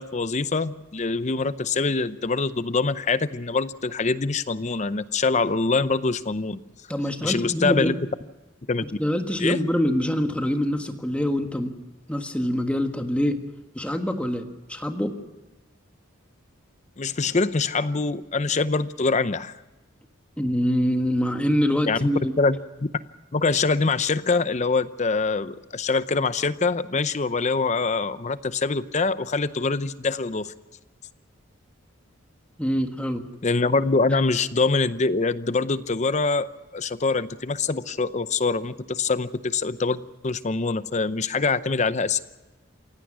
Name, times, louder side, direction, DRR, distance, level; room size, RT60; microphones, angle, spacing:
voice 1, 0.0-6.6 7.2-7.9 8.7-8.9 9.4-9.6 17.0-19.6 21.8-22.1 22.4-22.6 23.3-30.5 33.4-36.5 36.7-42.2, left 4 dB, 35° left, 14 dB, 0.6 m, -24 dB
voice 2, 6.9-7.9 8.8-11.7 12.1-13.4 13.7-15.2 20.4-22.3 32.6-33.2 34.1-34.2, equal, 5° left, 5 dB, 1.5 m, -25 dB
28.0 x 16.5 x 6.2 m, 1.1 s
head